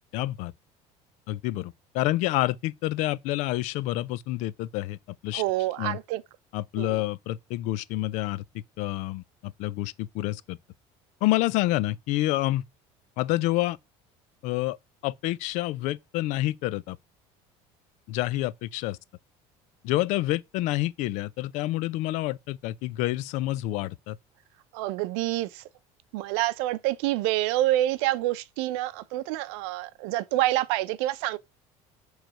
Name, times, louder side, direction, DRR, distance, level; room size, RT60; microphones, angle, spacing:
voice 1, 0.1-0.5 1.3-5.0 5.2-5.4 5.8-6.0 6.5-8.4 8.8-10.6 11.2-12.6 13.2-13.8 14.4-14.8 15.0-17.0 18.1-19.0 19.8-24.2, left 16 dB, 60° left, 0.4 m, -28 dB
voice 2, 5.3-6.2 6.8-7.0 24.7-25.6 26.1-31.4, right 15 dB, 85° right, 0.6 m, -27 dB
8.9 x 3.2 x 5.2 m
cardioid pair, 160°, 14 cm